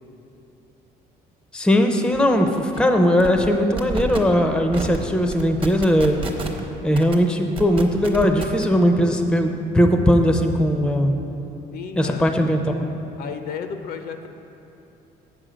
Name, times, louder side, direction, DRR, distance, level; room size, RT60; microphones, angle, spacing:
voice 1, 1.5-6.2 6.8-11.1 12.0-12.6, equal, 5° left, 5 dB, 0.5 m, -19 dB
sound 1, 2.1-2.2 2.5-2.8 3.2-3.5 3.8-4.2 4.7-5.0 5.3-6.6 6.9-7.1 7.6-8.6, right 4 dB, 30° right, 0.9 m, -29 dB
voice 2, 11.7-12.2 13.2-14.3, left 7 dB, 65° left, 7 dB, 0.6 m, -33 dB
7.9 x 6.1 x 5.0 m, 2.9 s
cardioid pair, 110°, 17 cm